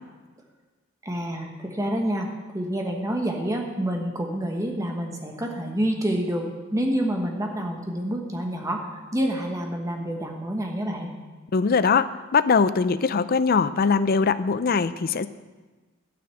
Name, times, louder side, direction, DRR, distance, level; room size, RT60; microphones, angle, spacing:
voice 1, 1.0-6.4 6.7-11.1, right 1 dB, 15° right, 1 dB, 1.2 m, -28 dB
voice 2, 11.5-15.3, left 5 dB, 45° left, 14 dB, 0.5 m, -21 dB
13.5 x 6.0 x 7.6 m, 1.3 s
head